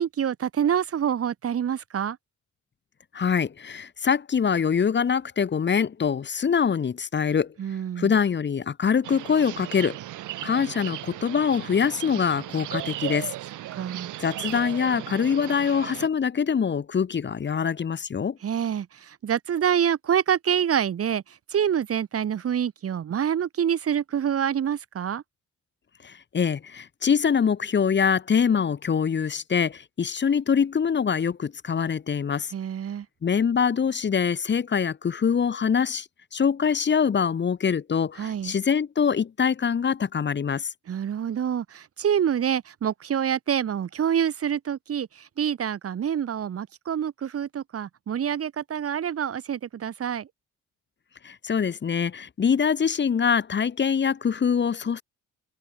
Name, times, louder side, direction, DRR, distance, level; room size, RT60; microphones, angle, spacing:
voice 1, 0.0-2.2 7.6-8.1 13.7-14.1 18.4-25.2 32.5-33.0 38.2-38.5 40.9-50.3, right 9 dB, 50° right, 1.5 m, -26 dB
voice 2, 3.1-7.5 8.0-10.0 10.4-13.3 14.2-18.4 26.0-32.5 33.2-40.7 51.2-55.0, left 6 dB, 40° left, 1.3 m, -24 dB
sound 1, 9.0-16.1, right 15 dB, 80° right, 1.6 m, -36 dB
cardioid pair, 90°, 30 cm